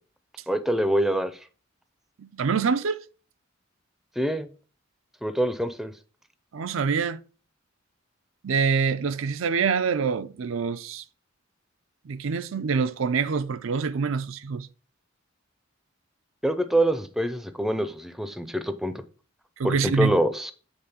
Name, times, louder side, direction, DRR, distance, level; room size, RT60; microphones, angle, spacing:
voice 1, 0.5-1.3 4.2-4.5 5.2-5.9 16.4-18.9 19.6-20.5, right 1 dB, ahead, 0.5 m, -25 dB
voice 2, 2.2-3.0 6.5-7.2 8.4-11.0 12.0-14.7 19.6-20.2, right 5 dB, 75° right, 0.5 m, -25 dB
8.0 x 3.6 x 5.5 m
head